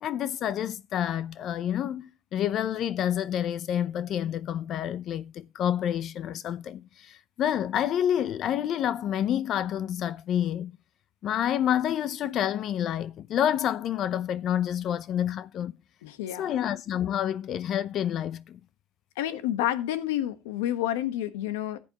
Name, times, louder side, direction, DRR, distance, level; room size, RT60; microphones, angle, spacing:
voice 1, 0.0-10.8 11.2-15.7 16.4-18.6, left 10 dB, 50° left, 0.5 m, -28 dB
voice 2, 16.0-16.6 19.2-21.8, left 12 dB, 90° left, 1.1 m, -29 dB
14.5 x 8.5 x 2.9 m
supercardioid pair, 110°, 0 cm